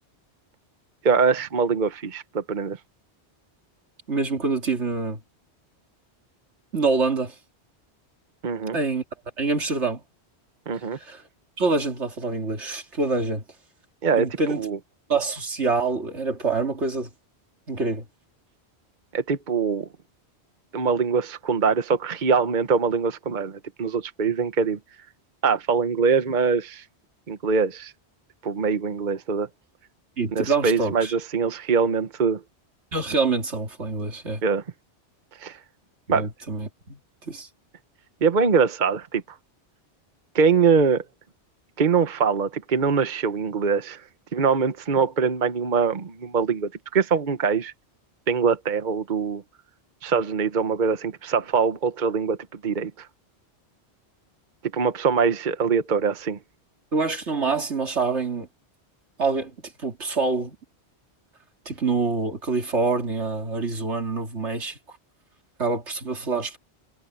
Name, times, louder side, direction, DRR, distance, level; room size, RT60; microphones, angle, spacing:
voice 1, 1.0-2.8 8.4-8.8 10.7-11.0 14.0-14.3 14.5-14.8 19.1-19.9 20.7-24.8 25.4-26.8 27.3-27.9 28.4-29.5 30.3-32.4 34.4-34.6 35.4-35.6 36.1-36.3 38.2-39.2 40.3-41.0 41.8-44.0 44.3-47.7 48.3-49.4 50.0-52.4 52.6-53.1 54.7-56.4, right 5 dB, 45° right, 1.1 m, -23 dB
voice 2, 4.1-5.2 6.7-7.3 8.7-9.0 9.4-10.0 10.9-11.2 11.6-13.4 14.2-14.6 15.1-17.1 17.7-18.0 30.2-31.1 32.9-34.4 36.1-37.5 56.9-58.5 59.2-59.5 59.8-60.6 61.7-64.8 65.6-66.6, right 4 dB, 85° right, 3.0 m, -26 dB
omnidirectional pair, 1.1 m